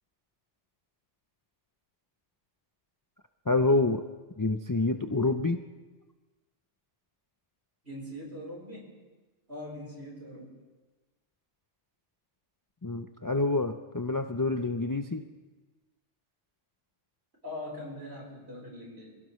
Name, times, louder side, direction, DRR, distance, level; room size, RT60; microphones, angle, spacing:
voice 1, 3.5-4.0 4.4-5.6 12.8-15.2, left 2 dB, 30° left, 6 dB, 0.4 m, -27 dB
voice 2, 7.8-8.9 9.5-10.5 17.4-19.2, left 1 dB, 55° right, -2 dB, 4.5 m, -42 dB
26.0 x 17.0 x 3.2 m, 1.3 s
omnidirectional pair, 1.3 m